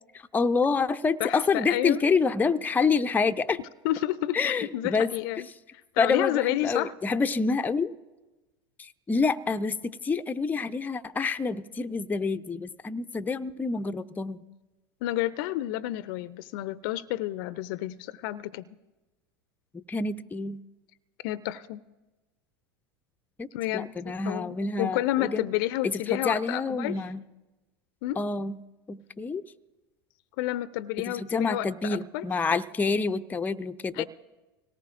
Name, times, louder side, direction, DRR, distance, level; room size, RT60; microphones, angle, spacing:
voice 1, 0.1-3.6 4.3-5.1 6.0-7.9 8.8-14.4 19.7-20.6 23.4-23.5 23.7-25.5 25.8-27.2 28.2-28.6 28.9-29.4 31.0-34.0, left 4 dB, 15° left, 0.5 m, -27 dB
voice 2, 1.2-2.0 3.8-5.5 5.9-6.9 15.0-18.7 21.2-21.8 23.5-27.0 28.0-28.2 30.4-32.3 33.9-34.0, left 15 dB, 60° left, 0.5 m, -30 dB
25.5 x 18.0 x 2.5 m
hypercardioid pair, 90°, 13 cm